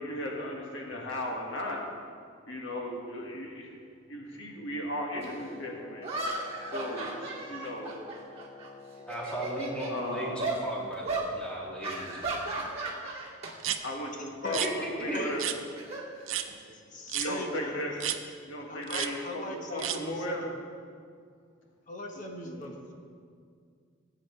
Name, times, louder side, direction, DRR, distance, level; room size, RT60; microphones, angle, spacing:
voice 1, 0.0-1.8 2.5-3.8 4.1-6.1 6.7-8.0 9.9-10.5 13.8-15.4 17.1-18.0 18.5-20.4 22.4-22.7, left 1 dB, 70° left, -1 dB, 1.8 m, -36 dB
Wind instrument woodwind instrument, 5.1-10.5, left 4 dB, 20° left, 0.4 m, -49 dB
sound 1, 5.2-5.3 6.0-8.7 9.0-9.9 10.4-10.6 11.0-11.3 11.8-13.5 13.8-14.1 15.3-16.7, right 2 dB, 30° right, 2.0 m, -35 dB
voice 2, 9.1-12.6 14.6-15.4, equal, 5° left, -6 dB, 2.4 m, -37 dB
sound 2, 13.6-13.8 14.5-14.7 15.4-15.6 16.3-16.5 17.1-17.3 18.0-18.2 18.9-19.1 19.8-20.0, right 11 dB, 80° right, 0.6 m, -31 dB
voice 3, 13.9-14.7 15.1-15.4 16.7-18.1 18.7-20.6 21.9-22.9, left 1 dB, 40° left, 1 dB, 1.2 m, -39 dB
18.5 x 8.7 x 3.3 m, 2.2 s
head